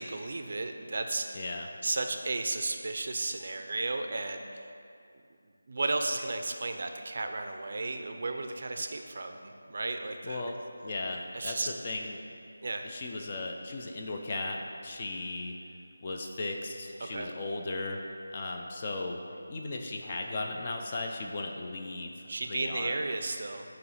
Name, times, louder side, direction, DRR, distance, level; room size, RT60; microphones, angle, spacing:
voice 1, 0.0-1.4 1.8-4.6 5.7-10.4 11.3-11.7 12.6-12.9 17.0-17.3 22.3-23.7, right 2 dB, 50° right, 5 dB, 0.4 m, -34 dB
voice 2, 1.3-1.7 10.2-12.2 12.8-15.6 16.0-18.1 18.3-19.2 19.5-23.0, left 2 dB, 30° left, 2 dB, 0.4 m, -36 dB
7.7 x 2.9 x 5.5 m, 2.4 s
figure-of-eight pair, 170°, 0 cm